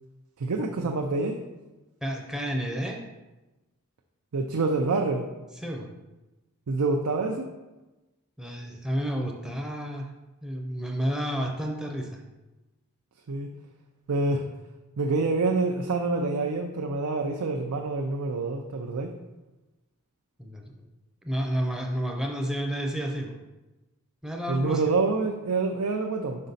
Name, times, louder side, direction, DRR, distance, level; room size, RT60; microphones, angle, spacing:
voice 1, 0.4-1.4 4.3-5.3 6.7-7.5 13.3-13.5 14.1-14.4 15.0-19.1 24.5-26.5, right 3 dB, 90° right, 3 dB, 0.5 m, -27 dB
voice 2, 2.0-3.0 5.6-5.9 8.4-10.1 10.4-12.2 20.4-20.9 21.2-23.4 24.2-24.8, equal, 5° right, 1 dB, 0.5 m, -31 dB
5.3 x 4.9 x 4.0 m, 1.1 s
head